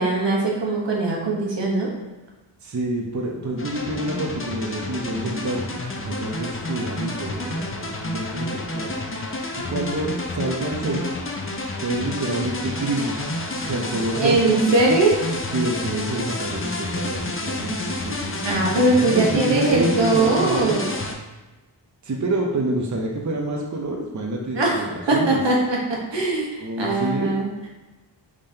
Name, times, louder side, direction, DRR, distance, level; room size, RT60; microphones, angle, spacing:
voice 1, 0.0-1.9 14.2-15.2 18.4-21.0 24.5-27.5, right 2 dB, 75° right, -2 dB, 1.2 m, -21 dB
voice 2, 2.6-8.9 9.6-11.0 11.8-13.2 13.6-14.4 15.5-20.8 22.0-25.4 26.6-27.4, right 2 dB, 40° right, 0 dB, 0.7 m, -27 dB
sound 1, 3.6-21.1, left 2 dB, 30° left, 0.6 m, -30 dB
5.1 x 3.7 x 2.8 m, 1.2 s
wide cardioid pair, 65°, 44 cm